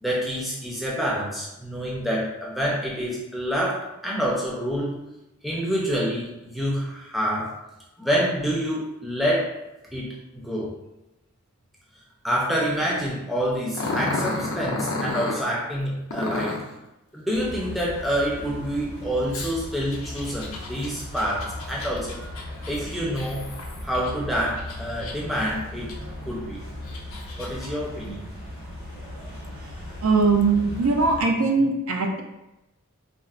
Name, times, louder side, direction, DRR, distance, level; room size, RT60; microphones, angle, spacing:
voice 1, 0.0-5.0 5.4-7.5 8.0-9.5 9.9-10.7 12.2-16.6 17.1-22.2 22.7-23.5 23.8-25.9 26.3-26.6 27.4-28.2, equal, ahead, -5 dB, 0.5 m, -27 dB
Growling, 13.7-15.4 16.1-16.7 19.3-24.1 24.6-25.4 25.9-26.0 26.7-27.7, left 2 dB, 65° left, 0.6 m, -32 dB
sound 1, 17.3-31.2, left 1 dB, 50° right, 0.9 m, -38 dB
voice 2, 30.0-32.2, right 4 dB, 65° right, 2 dB, 0.4 m, -21 dB
4.0 x 2.0 x 2.4 m, 0.94 s
head